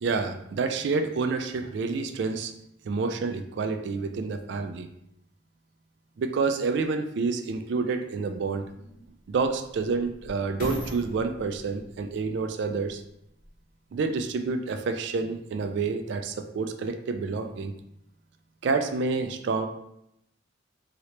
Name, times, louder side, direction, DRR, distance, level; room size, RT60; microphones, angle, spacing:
voice 1, 0.0-2.5 2.8-4.9 6.2-8.9 9.3-13.0 13.9-17.7 18.6-19.7, right 4 dB, 60° right, 7 dB, 0.3 m, -28 dB
sound 1, 7.6-7.7 8.4-13.7 14.3-14.4, left 1 dB, 40° left, 0.8 m, -42 dB
2.9 x 2.8 x 3.1 m, 0.80 s
head